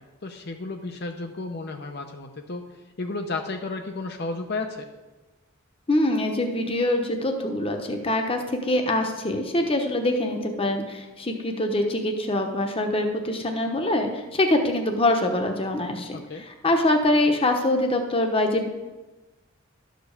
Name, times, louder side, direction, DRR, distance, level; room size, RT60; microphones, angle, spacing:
voice 1, 0.0-2.6 3.0-4.9 16.1-16.4, left 3 dB, 50° left, 4 dB, 0.7 m, -33 dB
voice 2, 5.9-18.7, left 1 dB, 25° left, 4 dB, 1.0 m, -24 dB
12.0 x 5.2 x 6.5 m, 1.2 s
head